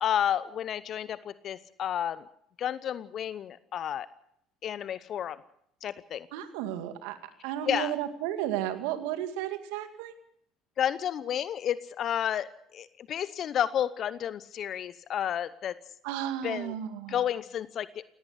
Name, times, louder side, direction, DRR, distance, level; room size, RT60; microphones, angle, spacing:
voice 1, 0.0-2.2 2.6-4.1 4.6-5.4 5.8-6.3 7.6-7.9 10.8-15.7 16.4-16.7 17.1-18.0, left 10 dB, 50° left, 17 dB, 0.8 m, -31 dB
voice 2, 6.3-7.2 7.4-10.1 16.0-17.2, right 11 dB, 75° right, 9 dB, 2.1 m, -33 dB
18.5 x 17.5 x 8.0 m, 0.69 s
hypercardioid pair, 65°, 0 cm